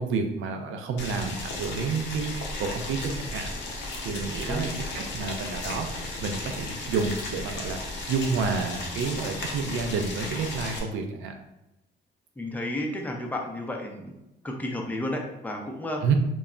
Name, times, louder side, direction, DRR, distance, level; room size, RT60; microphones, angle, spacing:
voice 1, 0.0-3.5 4.0-11.3 16.0-16.1, right 5 dB, 80° right, 5 dB, 0.5 m, -30 dB
Boiling, 1.0-10.8, left 2 dB, 65° left, 0.6 m, -35 dB
voice 2, 12.4-14.1 14.4-16.0, left 1 dB, 10° left, 0 dB, 0.5 m, -32 dB
2.2 x 2.0 x 3.6 m, 0.94 s
cardioid pair, 90°, 20 cm